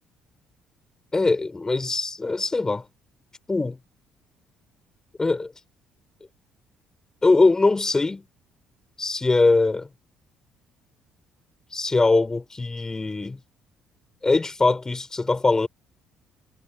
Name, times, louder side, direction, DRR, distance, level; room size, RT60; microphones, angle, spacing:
voice 1, 1.1-2.8 3.5-3.8 5.2-5.5 7.2-8.2 9.0-9.9 11.7-13.4 14.2-15.7, left 3 dB, 25° left, 4.8 m, -21 dB
hypercardioid pair, 50°, 3 cm